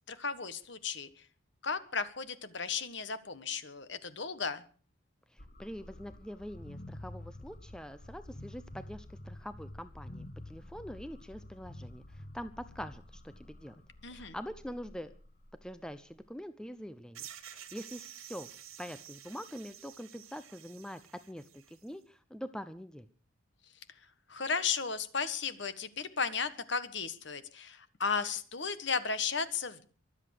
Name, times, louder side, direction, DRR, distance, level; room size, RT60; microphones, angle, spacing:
voice 1, 0.1-1.1 1.6-4.6 14.0-14.3 24.3-29.9, left 5 dB, 55° left, 12 dB, 1.5 m, -35 dB
voice 2, 5.3-13.8 14.1-15.1 15.6-18.5 18.8-21.0 21.3-23.1, equal, 5° left, 11 dB, 0.7 m, -44 dB
sound 1, 5.4-16.3, left 1 dB, 40° left, 1.7 m, -49 dB
sound 2, 17.1-21.9, right 10 dB, 85° right, 2.2 m, -50 dB
23.5 x 8.2 x 6.6 m, 0.42 s
head